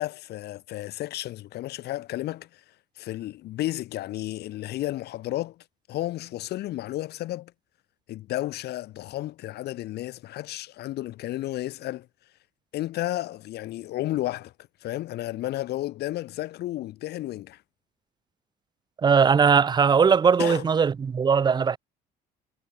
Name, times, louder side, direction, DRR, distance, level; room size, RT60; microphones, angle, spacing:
voice 1, 0.0-7.5 8.1-12.1 12.7-14.5 14.8-17.6 20.4-20.7, left 15 dB, 75° left, 2.6 m, -32 dB
voice 2, 19.0-21.8, right 6 dB, 25° right, 0.6 m, -20 dB
cardioid pair, 110°, 17 cm